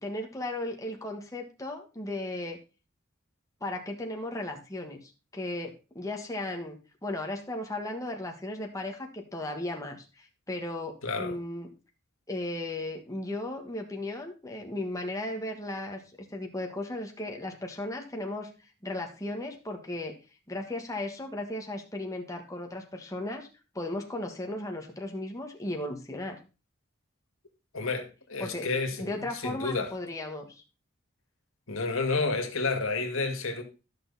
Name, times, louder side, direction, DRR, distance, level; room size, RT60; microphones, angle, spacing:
voice 1, 0.0-2.6 3.6-11.7 12.3-20.1 20.5-23.5 23.7-26.4 28.4-28.7 29.0-30.6, left 1 dB, 15° left, 1.5 m, -36 dB
voice 2, 11.0-11.3 27.7-29.9 31.7-33.6, left 3 dB, 80° left, 2.0 m, -30 dB
13.0 x 6.3 x 4.1 m
head